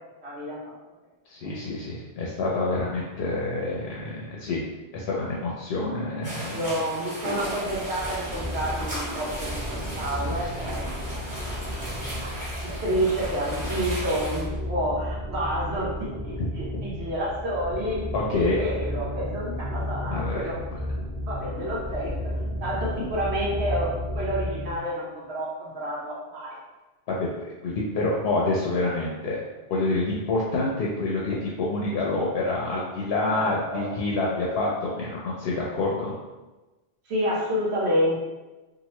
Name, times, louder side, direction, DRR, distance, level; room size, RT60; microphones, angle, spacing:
voice 1, 0.2-0.7 1.4-1.5 6.5-10.9 11.8-11.9 12.2-12.3 12.6-18.0 18.3-20.6 21.2-26.6 33.3-33.9 37.1-38.2, equal, 85° right, -5 dB, 1.2 m, -29 dB
voice 2, 1.3-4.6 4.9-6.6 10.2-10.3 16.4-16.5 18.1-18.6 20.1-20.5 27.1-27.3 27.6-29.4 29.7-36.1, left 2 dB, 75° left, -4 dB, 0.8 m, -27 dB
sound 1, 6.2-14.4, equal, 5° right, 1.4 m, -36 dB
sound 2, 7.3-24.8, equal, 45° right, 0.6 m, -33 dB
2.9 x 2.5 x 3.0 m, 1.1 s
omnidirectional pair, 1.1 m